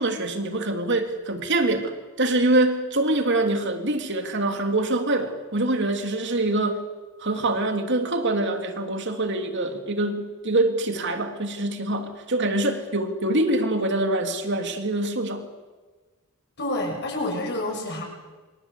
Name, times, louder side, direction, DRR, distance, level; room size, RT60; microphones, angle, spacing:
voice 1, 0.0-6.8 7.2-15.5, right 2 dB, 55° right, 6 dB, 3.1 m, -24 dB
voice 2, 16.6-18.0, left 1 dB, 50° left, 2 dB, 7.3 m, -28 dB
28.0 x 25.0 x 8.5 m, 1.3 s
head